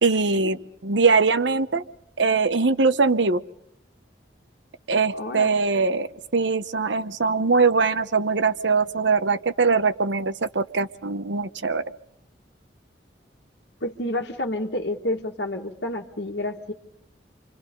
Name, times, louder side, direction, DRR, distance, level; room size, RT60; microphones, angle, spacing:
voice 1, 0.0-1.8 2.2-3.4 4.9-11.8, right 4 dB, 85° right, 12 dB, 1.0 m, -22 dB
voice 2, 5.1-5.5 13.8-16.7, left 1 dB, 75° left, 1 dB, 1.8 m, -29 dB
29.5 x 25.5 x 5.3 m, 0.70 s
head